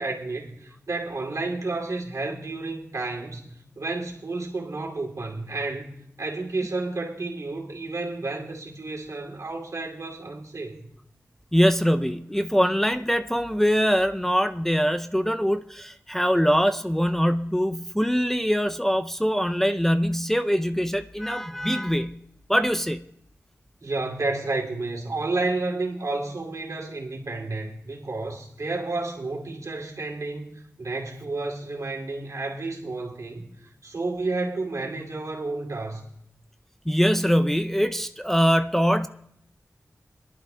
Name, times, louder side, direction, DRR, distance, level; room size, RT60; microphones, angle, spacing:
voice 1, 0.0-5.9 6.2-10.9 23.8-33.5 33.8-36.0, right 3 dB, 70° right, 2.5 m, -31 dB
voice 2, 11.5-22.2 22.5-23.1 36.9-39.1, equal, 5° left, 0.4 m, -23 dB
22.0 x 11.5 x 2.2 m
wide cardioid pair, 60°, 5 cm